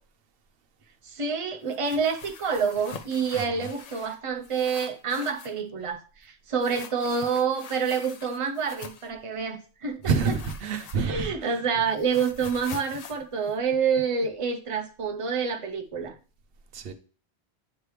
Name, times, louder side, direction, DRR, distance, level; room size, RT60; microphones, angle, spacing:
voice 1, 1.0-10.3 11.0-16.2, right 5 dB, 35° right, 0.7 m, -28 dB
sound 1, 1.7-4.2 4.4-5.6 6.6-9.1 10.0-11.3 11.6-14.3, left 6 dB, 50° left, 0.5 m, -44 dB
voice 2, 3.3-3.7 10.0-11.6 12.4-12.5 16.7-16.9, right 5 dB, 65° right, 0.8 m, -28 dB
9.4 x 3.3 x 3.1 m
omnidirectional pair, 1.1 m